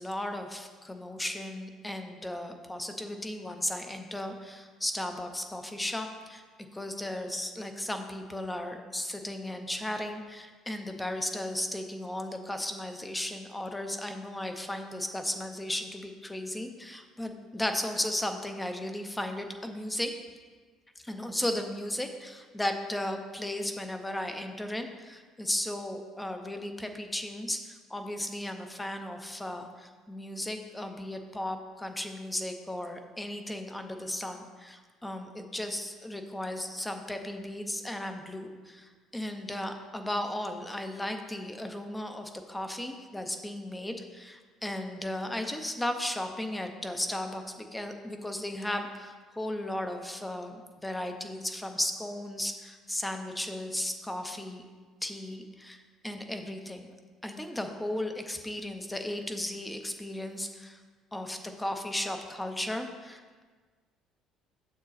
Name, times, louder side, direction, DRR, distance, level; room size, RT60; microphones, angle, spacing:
voice 1, 0.0-6.4 6.7-20.1 21.0-54.6 55.0-56.9 57.2-60.8 61.1-63.4, left 1 dB, 5° left, 6 dB, 0.5 m, -35 dB
6.7 x 6.4 x 4.0 m, 1.4 s
cardioid pair, 150°, 0 cm